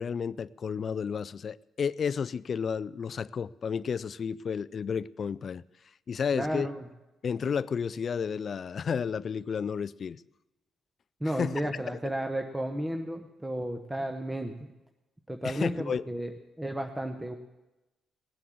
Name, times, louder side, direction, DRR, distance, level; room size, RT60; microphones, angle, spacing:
voice 1, 0.0-5.6 6.1-6.7 7.2-10.2 11.3-11.7 15.4-16.1, left 6 dB, 50° left, 0.4 m, -32 dB
voice 2, 6.3-6.8 11.2-14.5 15.3-16.3 16.6-17.3, right 1 dB, 10° right, 1.0 m, -33 dB
18.5 x 7.8 x 7.6 m
cardioid pair, 90°, 0 cm